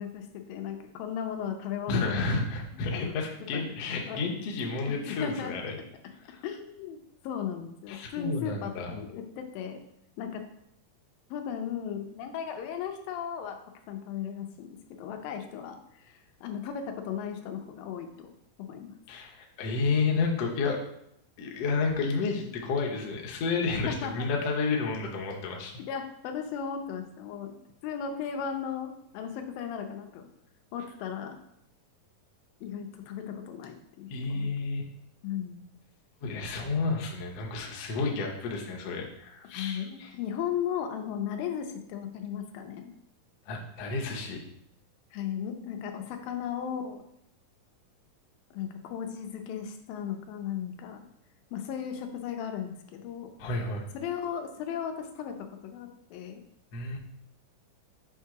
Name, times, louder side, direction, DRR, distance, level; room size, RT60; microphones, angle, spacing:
voice 1, 0.0-2.3 2.7-3.7 4.1-4.2 4.8-5.6 6.4-7.0 7.2-9.8 10.2-10.4 11.3-13.6 13.9-18.3 18.6-18.9 23.8-24.3 25.9-30.3 30.7-31.4 32.6-34.5 35.2-35.6 39.5-42.9 45.1-47.0 48.5-51.1 51.5-53.3 53.9-56.4, left 8 dB, 85° left, 5 dB, 2.4 m, -36 dB
voice 2, 1.9-5.8 6.3-6.4 7.9-9.0 19.1-20.8 21.4-25.7 34.1-34.8 36.2-40.1 43.5-44.4 53.4-53.9 56.7-57.0, left 4 dB, 70° left, 0 dB, 1.5 m, -31 dB
7.4 x 2.8 x 4.7 m, 0.76 s
omnidirectional pair, 3.9 m